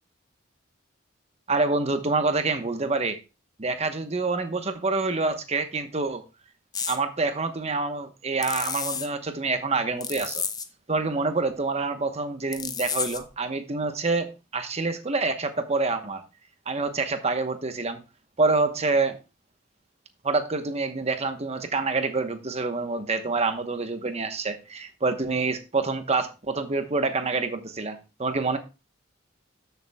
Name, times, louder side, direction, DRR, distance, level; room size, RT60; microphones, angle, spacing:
voice 1, 1.5-3.2 3.6-6.2 6.9-10.4 10.9-16.2 16.7-18.0 18.4-19.2 20.2-28.6, right 3 dB, 30° right, 1.0 m, -27 dB
sound 1, 6.7-7.0 8.4-9.1 10.0-10.7 12.5-13.3, left 6 dB, 20° left, 0.6 m, -31 dB
13.5 x 6.9 x 2.3 m
head